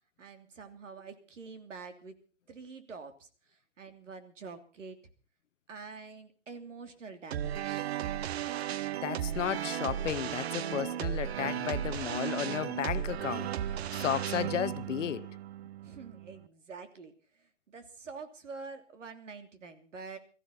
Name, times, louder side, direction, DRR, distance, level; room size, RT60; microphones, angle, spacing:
voice 1, 0.2-2.2 2.5-5.0 5.7-8.0 15.8-20.2, right 4 dB, 75° right, 3.1 m, -47 dB
sound 1, 7.3-16.5, right 10 dB, 55° right, 0.9 m, -35 dB
voice 2, 9.0-15.4, left 10 dB, 75° left, 0.8 m, -34 dB
21.0 x 15.0 x 4.0 m
hypercardioid pair, 140°, 37 cm